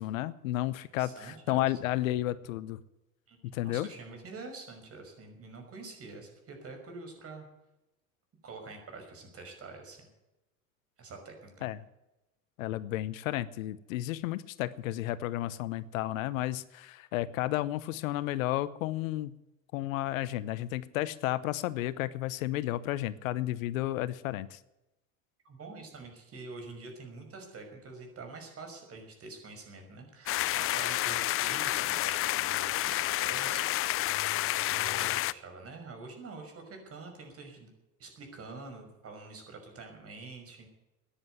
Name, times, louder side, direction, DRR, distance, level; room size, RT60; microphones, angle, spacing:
voice 1, 0.0-2.8 3.4-3.9 11.6-11.8 12.6-19.4 19.7-24.6, left 15 dB, 80° left, 16 dB, 1.0 m, -32 dB
voice 2, 0.6-1.8 3.3-3.4 3.6-7.5 8.4-10.1 11.0-11.7 25.4-34.1 34.6-37.7 38.0-40.7, right 3 dB, 35° right, 5 dB, 5.8 m, -46 dB
sound 1, 30.3-35.3, left 15 dB, 35° left, 0.5 m, -30 dB
14.0 x 10.0 x 9.2 m, 0.93 s
hypercardioid pair, 95°, 40 cm